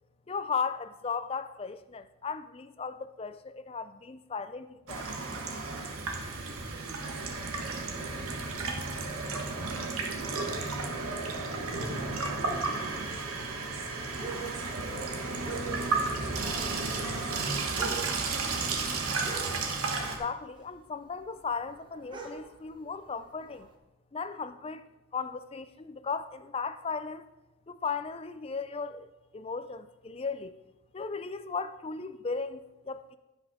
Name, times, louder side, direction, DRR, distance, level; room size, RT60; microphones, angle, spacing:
voice 1, 0.3-5.1 20.2-23.7 24.1-24.8 25.1-27.3 27.7-30.6 30.9-33.2, left 5 dB, 25° left, 0.3 m, -36 dB
Water tap faucet / Sink (filling or washing), 4.9-20.2, right 3 dB, 90° right, 1.3 m, -33 dB
voice 2, 6.1-9.6 10.1-18.9, right 1 dB, 45° right, 1.9 m, -50 dB
sound 1, 12.3-16.2 16.4-20.2 20.5-23.7, right 4 dB, 20° right, 0.9 m, -43 dB
16.0 x 5.5 x 3.6 m
head